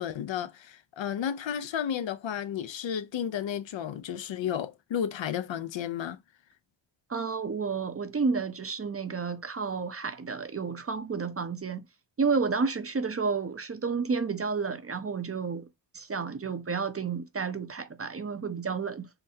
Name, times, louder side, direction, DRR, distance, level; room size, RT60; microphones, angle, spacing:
voice 1, 0.0-6.2, left 9 dB, 70° left, 0.6 m, -32 dB
voice 2, 7.1-11.9 12.2-15.7 15.9-19.1, right 5 dB, 30° right, 0.6 m, -31 dB
5.7 x 2.1 x 2.7 m
cardioid pair, 50°, 47 cm